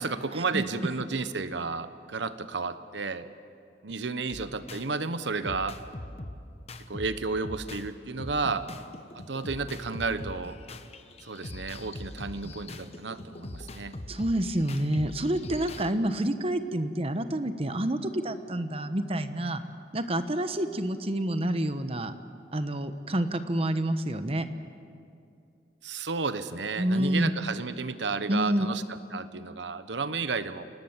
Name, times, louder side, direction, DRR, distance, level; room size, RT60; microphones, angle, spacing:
voice 1, 0.0-3.3 3.8-5.8 6.9-8.7 9.1-10.6 11.2-13.9 25.8-30.6, right 4 dB, 90° right, 12 dB, 1.1 m, -32 dB
sound 1, 4.3-4.9 5.4-7.9 8.2-15.9, left 1 dB, 35° left, 1.0 m, -41 dB
voice 2, 14.1-19.6 19.9-22.1 22.5-24.5 26.8-27.3 28.3-28.7, right 1 dB, 35° right, 10 dB, 1.0 m, -28 dB
29.0 x 19.0 x 7.4 m, 2.4 s
head